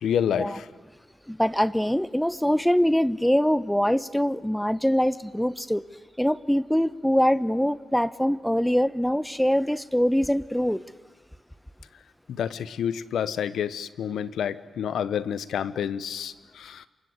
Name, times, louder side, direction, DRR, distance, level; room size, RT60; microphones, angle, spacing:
voice 1, 0.0-0.7 12.3-16.9, left 8 dB, 80° left, 16 dB, 1.0 m, -29 dB
voice 2, 1.3-5.8 6.2-10.8, equal, 5° left, 16 dB, 0.9 m, -23 dB
28.5 x 24.5 x 8.1 m, 1.3 s
supercardioid pair, 45°, 0 cm